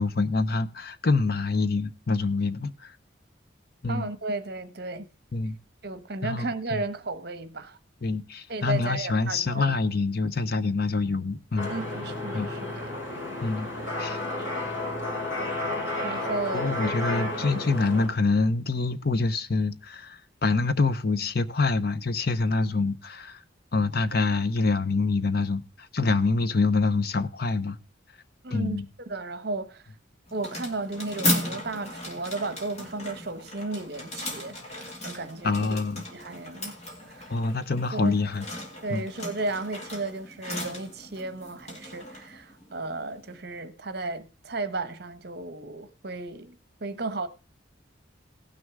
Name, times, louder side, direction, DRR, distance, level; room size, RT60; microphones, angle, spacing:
voice 1, 0.0-2.9 3.8-4.1 5.3-5.6 6.2-6.8 8.0-11.7 12.3-12.5 13.4-13.7 14.0-14.2 16.5-23.4 23.7-27.8 28.5-28.8 35.4-36.0 37.3-38.4 38.9-39.0, left 3 dB, 50° left, 0.7 m, -26 dB
voice 2, 3.9-5.1 5.8-7.8 8.5-9.8 11.7-12.9 16.0-16.7 28.4-29.9 30.3-35.8 36.1-36.7 37.1-37.3 37.9-38.2 38.8-47.3, right 3 dB, 55° right, 1.0 m, -34 dB
sound 1, 11.6-18.1, left 1 dB, 75° left, 4.7 m, -32 dB
sound 2, 30.3-43.4, left 1 dB, 35° left, 2.3 m, -36 dB
18.0 x 6.3 x 3.5 m
head